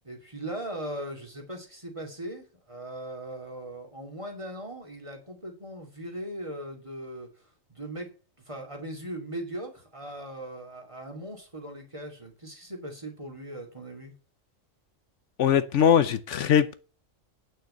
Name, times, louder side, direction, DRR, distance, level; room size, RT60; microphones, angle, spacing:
voice 1, 0.0-7.3 7.7-8.1 8.5-14.1, right 1 dB, 25° right, 2.8 m, -39 dB
voice 2, 15.4-16.7, left 8 dB, 70° left, 1.0 m, -21 dB
9.2 x 6.5 x 6.7 m
omnidirectional pair, 1.3 m